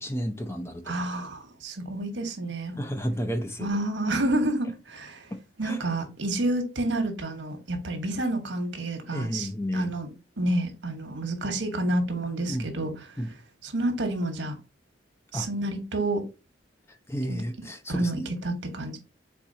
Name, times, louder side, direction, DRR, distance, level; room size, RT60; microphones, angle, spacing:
voice 1, 0.0-1.0 2.8-3.7 5.6-5.8 9.1-10.0 12.5-12.7 13.2-13.3 15.3-15.5 16.9-18.3, equal, 15° left, 0.5 m, -32 dB
voice 2, 0.9-2.8 3.6-5.3 5.6-10.1 10.4-12.9 13.6-14.5 15.3-16.2 17.3-17.4 17.9-19.0, right 1 dB, 85° right, 1.1 m, -29 dB
4.2 x 3.6 x 2.7 m
head